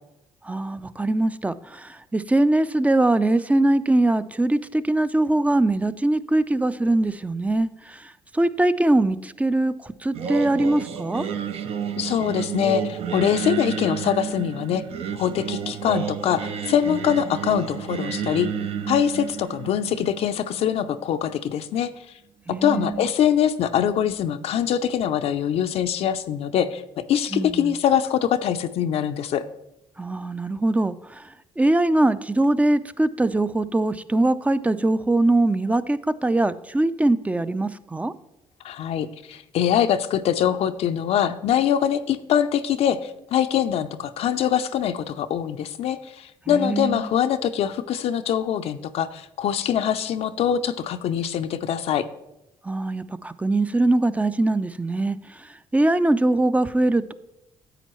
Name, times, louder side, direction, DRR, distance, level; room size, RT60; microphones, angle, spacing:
voice 1, 0.4-11.3 22.5-23.1 27.3-27.7 30.0-38.1 46.5-47.1 52.6-57.1, right 2 dB, 10° right, 14 dB, 0.4 m, -22 dB
Singing, 10.1-21.2, right 7 dB, 60° right, 0.7 m, -31 dB
voice 2, 12.0-14.8 15.1-18.5 18.9-21.9 22.5-29.4 38.6-52.1, left 9 dB, 65° left, 9 dB, 0.5 m, -23 dB
9.8 x 8.2 x 3.1 m, 0.89 s
supercardioid pair, 70°, 11 cm